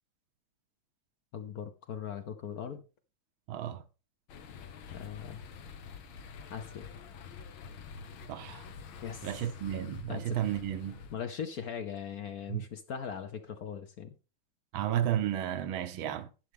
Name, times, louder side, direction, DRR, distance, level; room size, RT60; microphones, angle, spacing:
voice 1, 1.3-2.8 4.9-5.4 6.5-6.9 9.0-9.3 10.1-10.4 11.1-14.1, left 7 dB, 60° left, 1.0 m, -40 dB
voice 2, 3.5-3.8 8.3-8.6 9.2-11.0 12.5-12.6 14.7-16.3, right 11 dB, 80° right, 1.6 m, -33 dB
sound 1, 4.3-11.2, left 6 dB, 80° left, 1.8 m, -47 dB
11.5 x 8.1 x 3.6 m
omnidirectional pair, 2.2 m